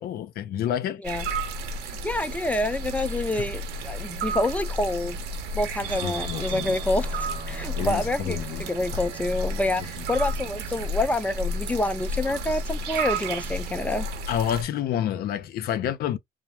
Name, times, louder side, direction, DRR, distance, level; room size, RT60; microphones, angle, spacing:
voice 1, 0.0-1.0 6.0-6.8 7.8-8.6 14.3-16.2, left 10 dB, 65° left, 0.5 m, -29 dB
sound 1, 1.0-14.6, right 1 dB, 75° right, 0.7 m, -32 dB
voice 2, 1.9-5.2 5.5-14.1, left 1 dB, 10° left, 0.4 m, -27 dB
Guitar, 5.9-13.5, right 2 dB, 25° right, 0.7 m, -47 dB
2.3 x 2.1 x 2.8 m
cardioid pair, 110°, 17 cm